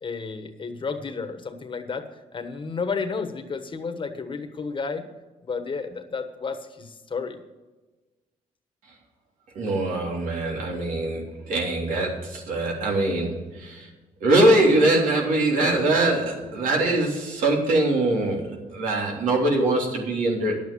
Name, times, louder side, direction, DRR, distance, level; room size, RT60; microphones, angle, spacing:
voice 1, 0.0-5.0 5.4-7.4, left 5 dB, 40° left, 8 dB, 1.4 m, -32 dB
voice 2, 9.5-13.9 14.2-20.6, right 2 dB, 90° right, 0 dB, 3.4 m, -22 dB
10.5 x 8.7 x 6.9 m, 1.2 s
cardioid pair, 100°, 13 cm